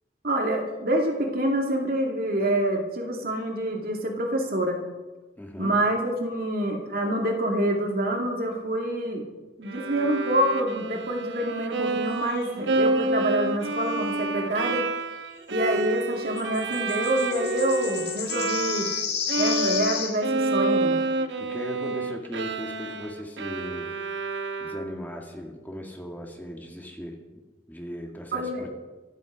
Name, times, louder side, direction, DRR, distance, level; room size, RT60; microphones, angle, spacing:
voice 1, 0.2-4.8 5.6-9.2 9.6-14.8 15.5-18.9 19.4-21.0 28.3-28.7, right 1 dB, 55° right, 1 dB, 2.6 m, -26 dB
voice 2, 5.4-5.7 21.4-23.9 24.6-27.2 27.7-28.7, equal, 10° left, 1 dB, 1.9 m, -37 dB
Bowed string instrument, 9.7-19.0 19.3-25.1, right 2 dB, 85° right, 1.0 m, -29 dB
sound 1, 12.4-12.6 16.4-20.2, left 7 dB, 70° left, 5.3 m, -31 dB
25.0 x 9.2 x 5.1 m, 1.2 s
head